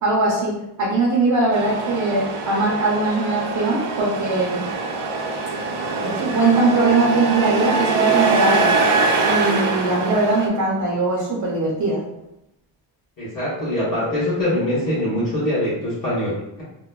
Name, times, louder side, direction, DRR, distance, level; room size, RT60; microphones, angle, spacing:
voice 1, 0.0-4.6 6.0-8.7 9.2-12.0, right 2 dB, 40° right, -4 dB, 0.5 m, -21 dB
Truck, 1.5-10.5, right 4 dB, 80° right, 0.6 m, -22 dB
voice 2, 13.2-16.6, left 1 dB, 40° left, -11 dB, 1.2 m, -23 dB
3.0 x 2.1 x 2.2 m, 0.87 s
cardioid pair, 150°, 50 cm